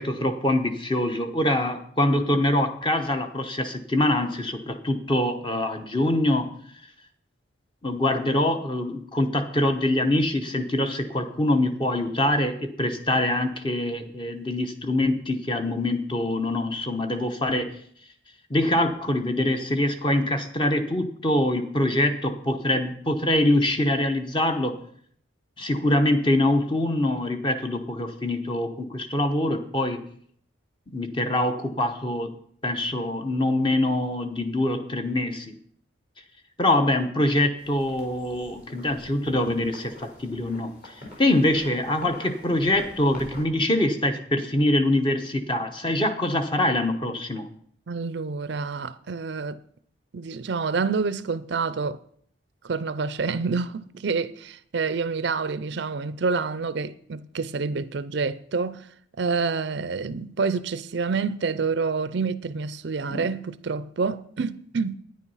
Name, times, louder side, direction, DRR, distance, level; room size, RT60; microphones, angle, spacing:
voice 1, 0.0-6.5 7.8-17.7 18.5-24.8 25.6-30.0 30.9-32.3 32.6-35.5 36.6-40.9 41.2-47.5 63.1-63.3, left 1 dB, 25° left, 0.9 m, -24 dB
sound 1, 37.6-43.4, left 1 dB, 45° left, 3.8 m, -45 dB
voice 2, 47.9-49.6 50.1-52.0 52.6-58.9 59.2-65.0, right 4 dB, 60° right, 0.5 m, -28 dB
10.5 x 9.6 x 5.6 m
head